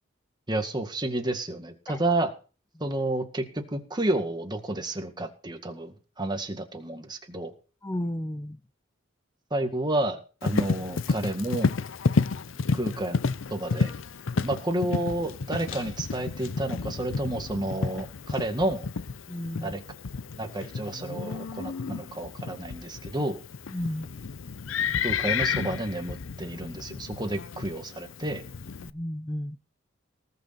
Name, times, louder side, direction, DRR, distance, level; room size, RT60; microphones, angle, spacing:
voice 1, 0.5-2.3 2.8-7.5 9.5-11.7 12.7-13.2 13.5-13.9 14.4-18.8 19.6-19.8 20.4-23.4 25.0-28.4, right 1 dB, 20° right, 5 dB, 2.0 m, -30 dB
voice 2, 7.8-8.6 19.3-19.7 23.7-24.1 28.8-29.6, left 1 dB, 15° left, 10 dB, 0.6 m, -33 dB
Livestock farm animals working animals, 10.4-28.9, left 4 dB, 75° left, 0.6 m, -31 dB
19.0 x 6.6 x 5.9 m, 0.36 s
head